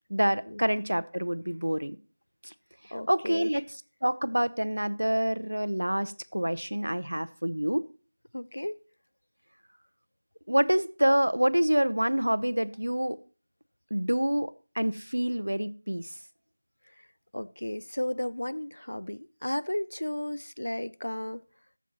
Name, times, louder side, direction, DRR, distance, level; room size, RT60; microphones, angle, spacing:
voice 1, 0.1-2.0 2.4-2.5 2.9-3.7 4.0-7.8 10.5-13.2 13.9-16.1, equal, 80° right, 0.7 m, -27 dB
voice 2, 2.9-3.6 8.3-8.8 17.3-21.4, left 1 dB, 70° left, 0.5 m, -34 dB
15.5 x 7.1 x 2.9 m
figure-of-eight pair, 170°, 0 cm